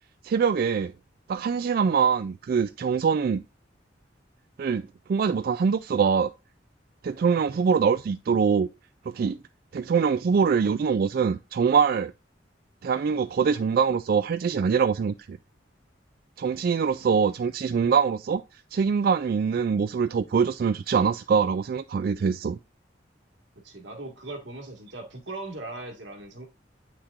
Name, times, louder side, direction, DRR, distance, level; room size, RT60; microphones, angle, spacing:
voice 1, 0.2-0.9 1.3-3.4 4.6-6.3 7.0-8.7 9.1-9.4 9.7-12.1 12.8-15.4 16.4-22.6, right 6 dB, 55° right, 0.3 m, -24 dB
voice 2, 23.6-26.5, right 2 dB, 85° right, 1.8 m, -39 dB
8.1 x 5.9 x 2.5 m
head